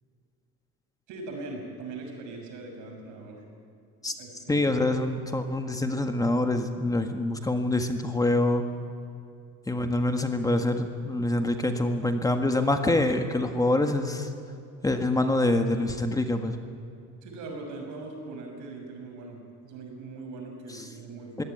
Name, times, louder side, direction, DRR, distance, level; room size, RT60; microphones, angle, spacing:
voice 1, 1.1-3.4 4.2-4.7 17.2-21.5, right 3 dB, 90° right, 2 dB, 6.4 m, -40 dB
voice 2, 4.5-8.6 9.7-14.3 14.8-16.6 20.7-20.8 21.4-21.5, left 2 dB, 10° left, 6 dB, 1.6 m, -25 dB
22.5 x 17.0 x 9.4 m, 2.5 s
cardioid pair, 135°, 29 cm